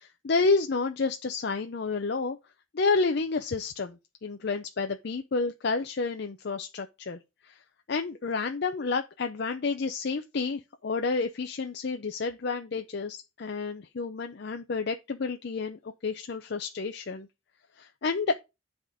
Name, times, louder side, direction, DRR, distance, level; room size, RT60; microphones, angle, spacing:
voice 1, 0.0-2.4 2.7-7.6 7.9-17.3 17.8-18.3, left 4 dB, 55° left, 0.5 m, -30 dB
10.5 x 3.6 x 4.9 m
head